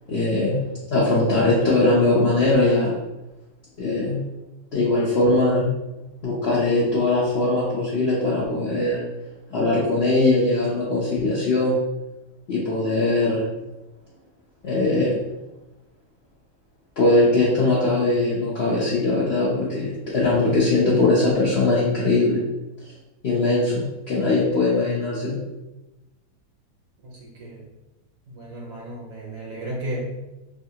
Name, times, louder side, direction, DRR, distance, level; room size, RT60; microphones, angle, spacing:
voice 1, 0.1-0.6 0.9-2.9 3.8-4.2 4.7-5.7 6.2-9.0 9.5-11.8 12.5-13.4 14.6-15.2 17.0-22.4 23.2-25.4, left 2 dB, 65° left, -6 dB, 0.6 m, -20 dB
voice 2, 27.0-27.7 28.3-30.3, right 1 dB, 60° right, -3 dB, 1.0 m, -34 dB
3.4 x 2.3 x 2.7 m, 1.0 s
omnidirectional pair, 1.8 m